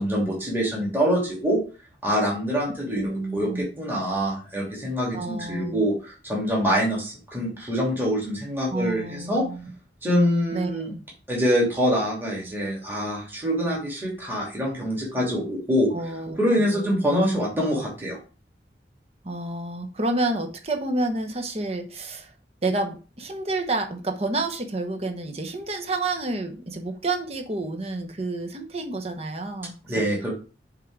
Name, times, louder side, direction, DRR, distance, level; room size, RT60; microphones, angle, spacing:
voice 1, 0.0-1.6 2.0-9.4 10.0-10.9 11.3-15.9 16.4-18.2 29.9-30.3, equal, 10° right, -4 dB, 2.5 m, -25 dB
voice 2, 2.9-3.7 5.1-5.8 8.7-9.7 10.5-10.7 15.9-17.0 19.2-22.3 22.6-30.0, right 2 dB, 35° right, 5 dB, 1.0 m, -29 dB
6.8 x 3.8 x 4.6 m, 0.35 s
head